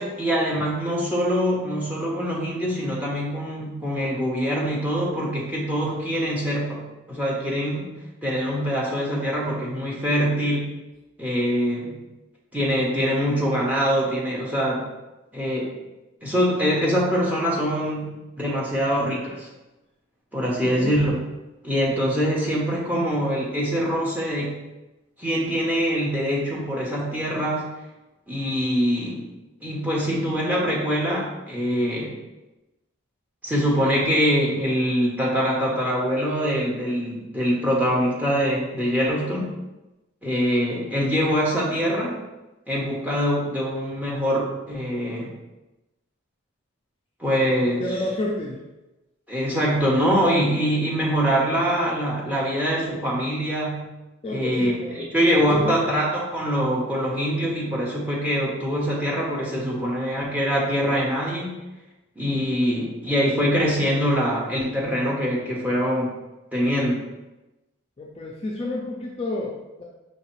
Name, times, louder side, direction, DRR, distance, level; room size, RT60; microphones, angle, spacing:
voice 1, 0.0-7.9 8.2-10.7 11.2-12.0 12.5-14.9 15.3-15.8 16.2-19.5 20.3-21.1 21.6-24.6 25.2-27.7 28.3-29.3 29.6-32.1 33.4-39.5 40.2-42.2 42.7-45.3 47.2-48.0 49.3-53.9 54.3-54.7 55.1-61.6 62.2-66.1 66.5-67.0, equal, 10° right, -4 dB, 0.8 m, -24 dB
voice 2, 20.5-21.0 47.4-48.6 54.2-55.9 68.0-69.8, left 2 dB, 30° left, -2 dB, 0.4 m, -31 dB
4.7 x 3.2 x 3.1 m, 1.0 s
head